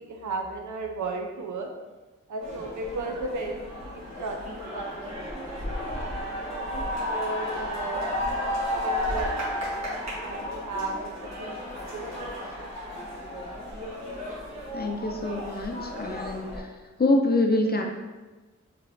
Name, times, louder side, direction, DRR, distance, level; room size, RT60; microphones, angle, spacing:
voice 1, 0.0-1.7 2.3-4.9 5.3-6.2 6.5-8.0 8.7-9.8 10.2-11.1 11.4-13.0, right 3 dB, 85° right, 2 dB, 0.6 m, -35 dB
sound 1, 2.4-16.6, left 1 dB, 65° right, 1.4 m, -33 dB
voice 2, 14.7-16.7 17.0-17.8, left 2 dB, 35° left, 2 dB, 0.6 m, -25 dB
3.8 x 3.0 x 3.1 m, 1.2 s
cardioid pair, 55°, 29 cm